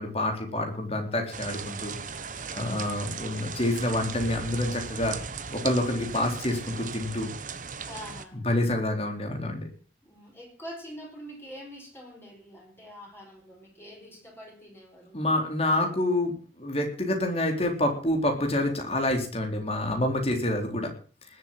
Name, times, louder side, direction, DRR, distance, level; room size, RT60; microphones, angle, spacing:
voice 1, 0.0-1.9 2.5-5.2 5.5-7.3 8.4-9.7 15.1-20.9, left 1 dB, 35° left, 3 dB, 4.0 m, -27 dB
sound 1, 1.3-8.3, right 5 dB, 50° right, 1.3 m, -37 dB
voice 2, 2.4-2.9 7.8-8.5 10.0-15.2, equal, 15° left, -1 dB, 5.1 m, -45 dB
19.5 x 8.0 x 7.5 m, 0.41 s
head